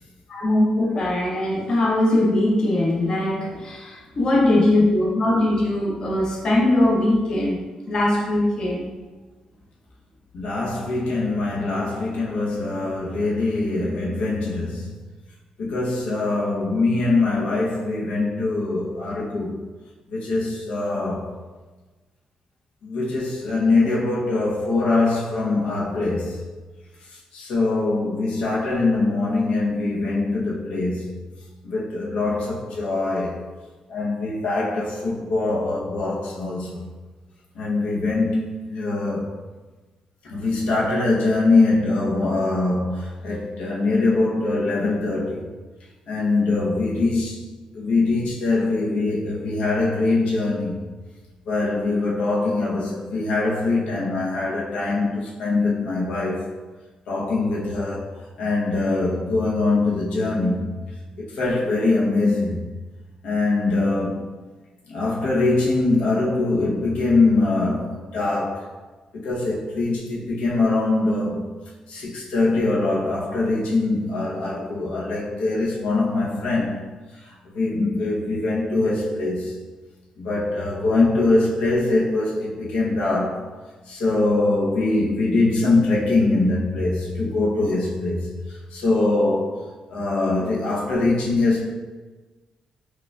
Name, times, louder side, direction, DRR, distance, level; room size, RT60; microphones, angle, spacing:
voice 1, 0.3-7.6 7.9-8.9, left 1 dB, 35° left, 0.6 m, -20 dB
voice 2, 10.3-14.9 15.6-19.6 20.1-21.3 22.8-26.4 27.3-31.2 31.6-33.5 33.9-36.8 37.5-39.3 40.2-45.4 46.1-47.4 47.7-50.8 51.5-56.5 57.1-58.1 58.4-60.7 61.2-62.6 63.2-64.3 64.9-68.7 69.1-71.5 71.9-76.8 77.5-79.5 80.2-83.5 83.9-89.5 89.9-91.7, left 2 dB, 90° left, 0.7 m, -23 dB
4.6 x 2.3 x 2.2 m
cardioid pair, 165°, 2 cm